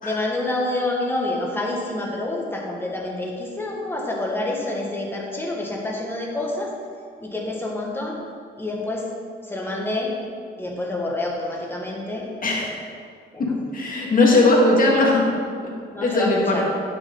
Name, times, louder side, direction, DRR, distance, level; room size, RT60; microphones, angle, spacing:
voice 1, 0.0-6.7 7.2-8.2 8.6-9.1 9.5-10.1 10.6-12.2 13.3-13.5 15.9-16.7, left 2 dB, 10° left, -2 dB, 1.9 m, -27 dB
voice 2, 13.7-15.3 16.0-16.7, left 2 dB, 45° left, -2 dB, 2.2 m, -18 dB
9.1 x 6.9 x 4.0 m, 2.1 s
cardioid pair, 90°, 20 cm